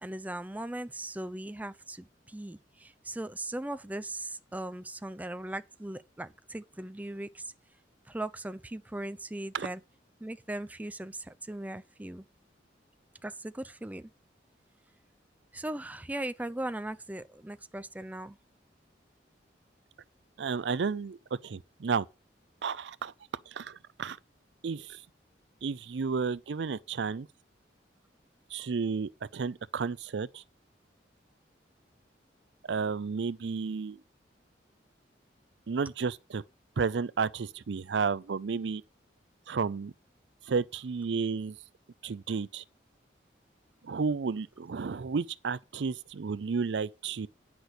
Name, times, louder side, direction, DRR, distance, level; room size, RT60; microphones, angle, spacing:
voice 1, 0.0-7.5 8.1-9.8 10.2-12.2 13.2-14.1 15.5-18.4, right 1 dB, 10° right, 0.5 m, -38 dB
voice 2, 20.4-21.2 21.4-22.1 22.6-23.1 23.5-24.2 24.6-25.0 25.6-27.3 28.5-30.4 32.6-34.0 35.7-36.4 36.8-38.8 39.5-39.9 40.5-41.6 42.0-42.6 43.8-47.3, right 5 dB, 70° right, 0.5 m, -32 dB
9.6 x 6.0 x 6.6 m
head